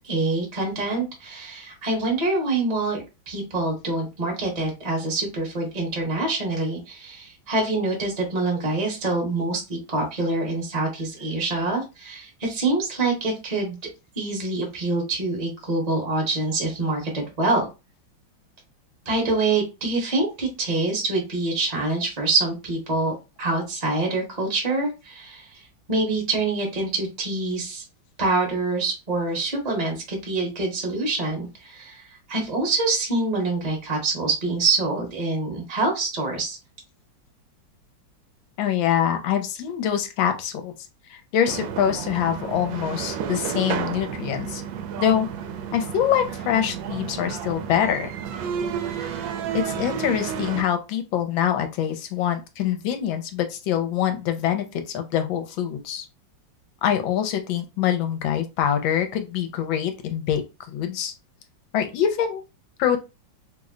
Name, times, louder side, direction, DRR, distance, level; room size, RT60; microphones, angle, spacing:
voice 1, 0.0-13.8 14.2-17.7 19.0-25.6 25.9-27.8 28.2-36.6, right 3 dB, 30° right, -1 dB, 0.8 m, -25 dB
voice 2, 38.6-40.7 41.1-44.6 45.0-45.3 45.7-48.1 49.0-56.1 56.8-60.4 60.7-61.1 61.7-62.4 62.8-63.0, left 9 dB, 80° left, 7 dB, 1.3 m, -24 dB
sound 1, 41.4-50.6, right 8 dB, 80° right, 1.3 m, -31 dB
3.3 x 2.1 x 3.6 m, 0.26 s
omnidirectional pair, 2.1 m